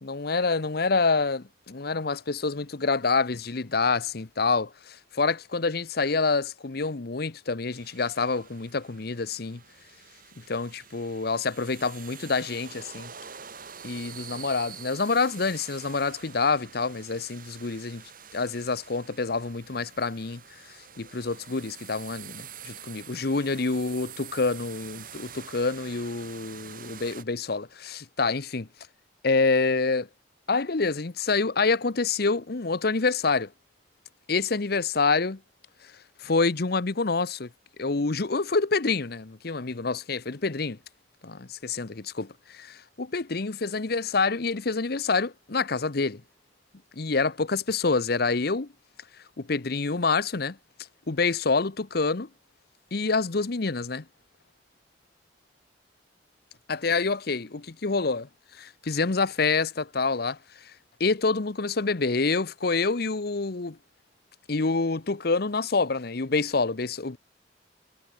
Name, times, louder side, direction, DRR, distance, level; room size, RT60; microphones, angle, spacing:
voice 1, 0.0-9.6 10.4-13.1 13.8-18.0 18.3-20.6 21.0-28.7 29.2-30.1 30.5-33.5 34.3-35.4 36.2-37.5 37.8-40.8 41.2-46.2 47.0-48.7 49.4-50.6 51.1-52.3 52.9-54.0 56.7-57.5 57.8-58.3 58.6-60.7 61.0-63.8 64.5-67.2, left 4 dB, 55° left, 0.9 m, -27 dB
sound 1, 7.7-27.2, right 8 dB, 50° right, 5.9 m, -46 dB
head